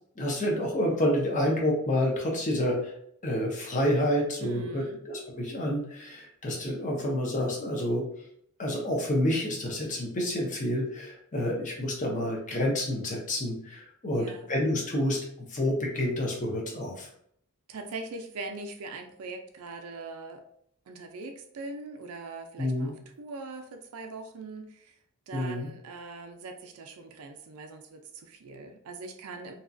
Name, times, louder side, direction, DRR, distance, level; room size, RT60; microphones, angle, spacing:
voice 1, 0.2-2.9 3.2-8.0 8.6-17.1 22.6-22.9 25.3-25.7, left 1 dB, 35° left, -2 dB, 0.7 m, -29 dB
voice 2, 4.4-5.0 14.1-14.5 17.7-20.4 20.9-24.9 25.3-29.5, right 3 dB, 75° right, 6 dB, 0.4 m, -41 dB
2.8 x 2.3 x 2.5 m, 0.69 s
head